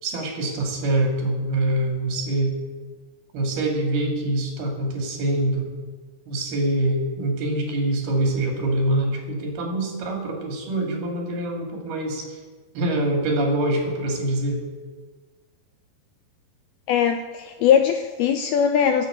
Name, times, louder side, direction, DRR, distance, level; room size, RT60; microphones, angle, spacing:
voice 1, 0.0-2.5 3.3-5.7 6.3-12.3 12.7-14.6, right 1 dB, 60° right, 1 dB, 4.3 m, -24 dB
voice 2, 16.9-19.1, left 8 dB, 85° left, 6 dB, 2.2 m, -20 dB
15.5 x 7.4 x 8.0 m, 1.4 s
omnidirectional pair, 5.1 m